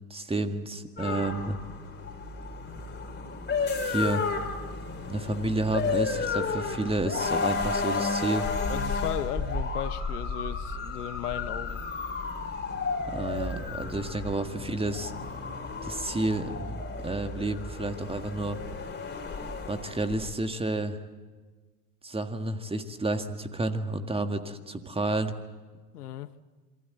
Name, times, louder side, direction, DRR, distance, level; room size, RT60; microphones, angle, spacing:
voice 1, 0.1-1.6 3.8-4.3 5.1-8.5 13.1-15.1 15.8-18.6 19.7-21.0 22.0-25.3, right 2 dB, 10° right, 8 dB, 1.8 m, -30 dB
sound 1, 1.0-20.3, left 4 dB, 20° left, 3.7 m, -32 dB
voice 2, 8.7-11.8 25.9-26.3, left 12 dB, 70° left, 15 dB, 1.1 m, -35 dB
27.5 x 24.0 x 7.9 m, 1.3 s
figure-of-eight pair, 70°, 47 cm